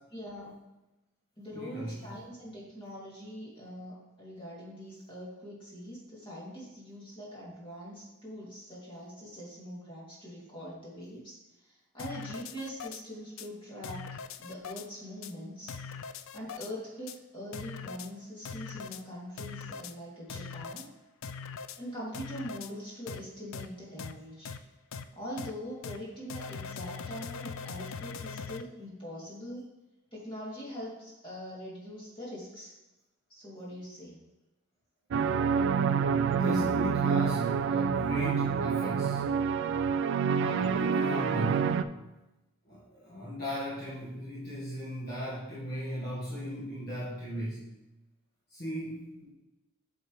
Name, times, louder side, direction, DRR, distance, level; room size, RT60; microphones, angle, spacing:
voice 1, 0.1-0.6 1.4-14.1 14.4-15.7 16.3-20.9 21.7-24.5 25.1-29.7 30.1-32.7 33.3-34.2, equal, 25° left, -7 dB, 2.6 m, -43 dB
voice 2, 1.5-2.1 36.3-39.2 40.4-41.8 42.7-47.7 48.5-49.3, equal, 50° left, -8 dB, 1.5 m, -37 dB
sound 1, 12.0-13.0 13.4-13.5 13.8-14.9 15.2-15.3 15.7-16.7 17.1-17.2 17.5-18.1 18.5-19.0 19.4-19.9 20.3-20.9 21.2-21.8 22.1-22.7 23.1-23.2 23.5-23.7 24.0-24.1 24.5-24.6 24.9-25.0 25.4-25.5 25.8-26.0 26.3-28.6, left 6 dB, 65° left, 0.4 m, -41 dB
sound 2, 35.1-41.8, right 6 dB, 60° right, 0.3 m, -27 dB
8.0 x 5.9 x 3.2 m, 1.0 s
head